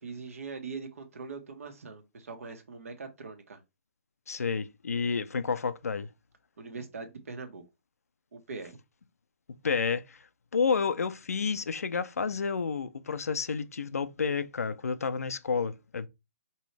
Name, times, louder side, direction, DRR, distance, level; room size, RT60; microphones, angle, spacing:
voice 1, 0.0-3.6 6.6-7.6 8.3-8.8, right 4 dB, 70° right, 1.5 m, -42 dB
voice 2, 4.3-6.1 9.6-10.2 10.5-16.1, left 5 dB, 85° left, 0.6 m, -30 dB
5.3 x 3.0 x 3.3 m
hypercardioid pair, 155°, 8 cm